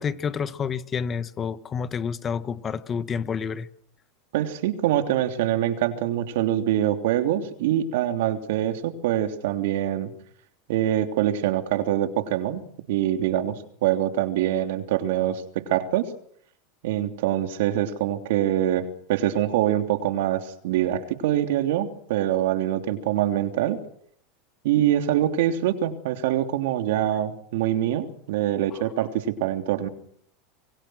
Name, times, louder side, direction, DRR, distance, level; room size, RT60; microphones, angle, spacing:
voice 1, 0.0-3.7, left 6 dB, 25° left, 1.4 m, -29 dB
voice 2, 4.3-10.1 10.7-12.6 12.9-16.1 16.8-23.8 24.6-29.9, right 12 dB, 75° right, 3.1 m, -24 dB
27.0 x 23.0 x 6.4 m
supercardioid pair, 120°, 0 cm